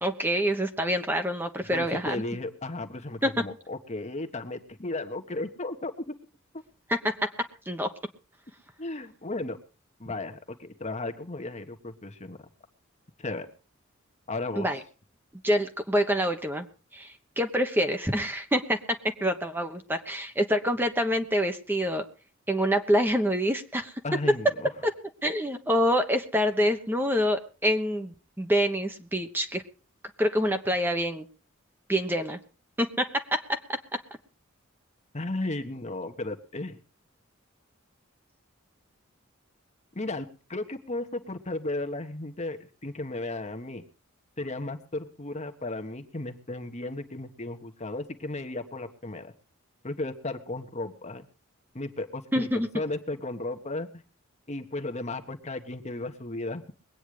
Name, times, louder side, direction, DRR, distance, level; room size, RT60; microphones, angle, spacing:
voice 1, 0.0-2.2 3.2-3.4 6.9-7.1 7.7-7.9 14.6-14.8 15.4-22.0 22.5-23.9 25.2-29.6 30.2-31.3 31.9-32.4 32.8-34.0 52.3-52.7, equal, 10° right, 6 dB, 1.1 m, -26 dB
voice 2, 1.7-5.9 8.8-9.6 10.0-12.4 13.2-13.5 14.3-14.7 24.0-24.7 35.1-36.8 39.9-43.8 44.4-49.3 49.8-51.2 51.7-54.0 54.5-56.7, left 2 dB, 35° left, 6 dB, 1.3 m, -35 dB
21.5 x 9.1 x 5.0 m, 0.37 s
head